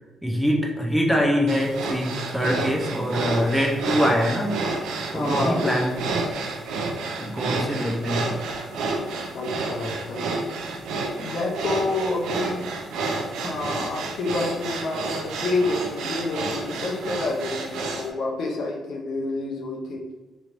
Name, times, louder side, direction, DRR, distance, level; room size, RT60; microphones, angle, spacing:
voice 1, 0.2-6.0 7.2-8.4 11.1-11.2, equal, ahead, -1 dB, 0.6 m, -24 dB
sound 1, 1.5-18.1, right 3 dB, 80° right, 0.4 m, -30 dB
voice 2, 5.1-6.1 9.3-10.2 11.2-12.7 13.4-20.1, left 2 dB, 70° left, -1 dB, 0.6 m, -28 dB
3.0 x 3.0 x 2.6 m, 1.2 s
cardioid pair, 90°, 0 cm